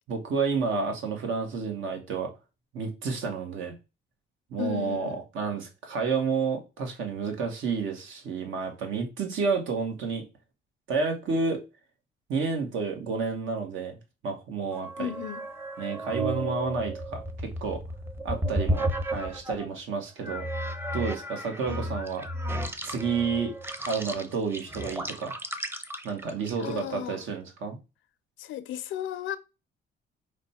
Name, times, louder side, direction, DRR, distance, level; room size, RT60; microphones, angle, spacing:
voice 1, 0.1-2.3 2.7-3.7 4.5-10.2 10.9-11.6 12.3-14.0 14.2-15.1 15.8-17.8 18.2-20.4 20.9-22.3 22.8-23.5 23.9-25.3 26.0-27.8, right 5 dB, 80° right, 1.1 m, -30 dB
voice 2, 4.6-5.2 15.0-15.4 21.7-22.0 26.6-27.2 28.4-29.4, left 11 dB, 75° left, 0.5 m, -35 dB
sound 1, 14.7-19.7 20.2-26.9, right 1 dB, 10° right, 0.6 m, -33 dB
5.0 x 2.1 x 4.1 m
cardioid pair, 90°, 20 cm